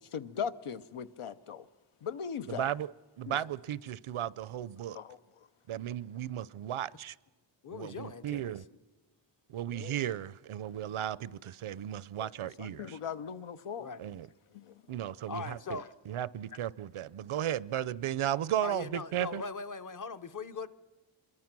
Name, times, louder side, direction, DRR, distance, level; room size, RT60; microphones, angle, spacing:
voice 1, 0.1-1.6 2.0-2.7 3.3-3.4 4.9-5.2 9.7-9.9 12.2-12.3 12.6-13.9, left 7 dB, 80° left, 0.9 m, -39 dB
voice 2, 2.5-2.9 3.2-5.0 5.7-7.2 7.7-8.6 9.5-13.0 14.0-14.3 14.9-15.8 16.1-19.4, right 11 dB, 75° right, 0.6 m, -35 dB
voice 3, 7.6-8.6 13.8-14.0 15.3-15.9 16.5-16.6 18.6-20.7, left 4 dB, 40° left, 0.8 m, -40 dB
26.0 x 22.5 x 6.0 m
wide cardioid pair, 130°, 50 cm